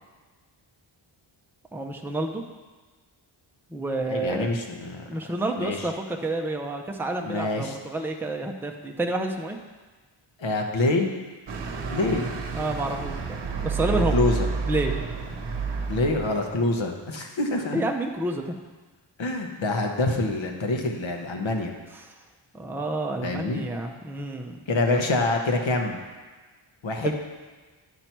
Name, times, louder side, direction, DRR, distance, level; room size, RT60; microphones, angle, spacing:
voice 1, 1.7-2.4 3.7-4.5 5.1-9.6 12.5-13.2 13.6-14.2 14.7-14.9 17.7-18.5 22.5-24.6 27.0-27.1, right 2 dB, 5° right, 2 dB, 0.6 m, -29 dB
voice 2, 4.1-5.1 5.6-5.9 7.2-7.8 10.4-11.1 11.9-12.3 13.9-14.5 15.9-17.8 19.2-21.7 23.2-23.6 24.7-26.0 26.8-27.1, left 2 dB, 65° left, 3 dB, 1.2 m, -26 dB
sound 1, 11.5-16.6, right 5 dB, 55° right, 1.0 m, -30 dB
10.0 x 5.7 x 4.5 m, 1.3 s
wide cardioid pair, 110°, 49 cm